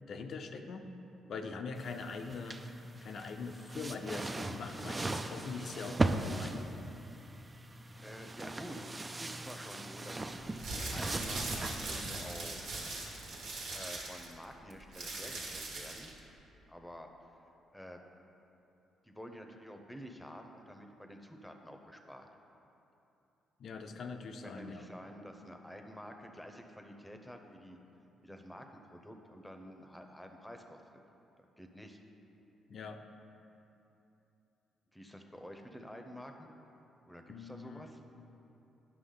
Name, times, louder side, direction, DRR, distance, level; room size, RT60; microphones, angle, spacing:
voice 1, 0.1-0.9 1.3-2.6 3.0-6.7 23.6-24.8 32.7-33.0 37.3-38.2, left 4 dB, 60° left, 6 dB, 0.5 m, -42 dB
sound 1, 1.7-12.1, right 2 dB, 25° right, 0.4 m, -39 dB
voice 2, 8.0-10.6 10.9-12.6 13.7-16.1 16.7-17.4 17.7-18.0 19.0-22.3 24.4-27.8 28.2-30.8 31.6-32.0 34.9-36.5 37.0-38.0, equal, 5° left, 4 dB, 0.8 m, -49 dB
sound 2, 10.5-16.2, right 2 dB, 80° right, 1.5 m, -40 dB
10.0 x 5.9 x 3.9 m, 2.9 s
cardioid pair, 90°, 0 cm